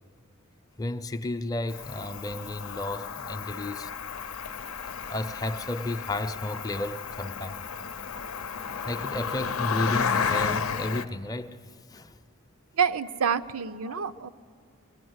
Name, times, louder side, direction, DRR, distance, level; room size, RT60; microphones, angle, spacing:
voice 1, 0.8-3.9 5.1-7.6 8.9-11.6 11.9-12.2 13.8-13.9, left 1 dB, 15° left, 0.5 m, -32 dB
Cricket, 1.7-11.0, left 6 dB, 75° left, 0.6 m, -32 dB
voice 2, 12.7-14.3, right 7 dB, 85° right, 0.6 m, -27 dB
23.0 x 17.5 x 8.0 m
head